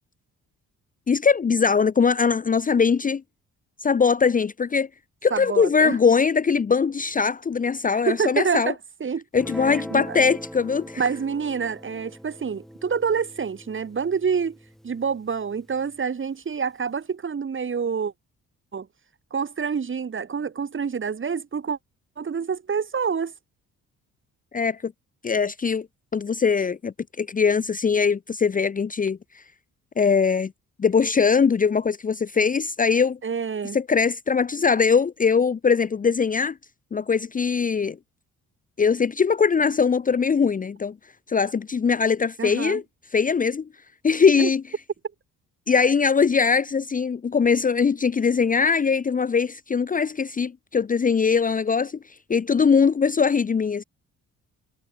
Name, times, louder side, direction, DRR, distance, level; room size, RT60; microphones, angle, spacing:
voice 1, 1.1-3.2 3.8-4.9 5.2-8.7 9.3-11.0 24.5-24.9 25.2-25.9 26.1-29.2 30.0-30.5 30.8-33.2 33.7-36.6 36.9-38.0 38.8-40.9 41.3-42.8 43.1-43.7 44.0-44.6 45.7-52.0 52.3-53.8, left 5 dB, 25° left, 0.8 m, -21 dB
voice 2, 5.3-6.0 8.0-9.2 9.7-10.2 11.0-14.6 14.8-18.1 18.7-18.9 19.3-21.8 22.2-23.3 33.2-33.8 42.4-42.8 44.4-44.5, right 6 dB, 40° right, 6.9 m, -27 dB
Guitar, 9.3-15.9, equal, ahead, 5.1 m, -41 dB
cardioid pair, 90°, 30 cm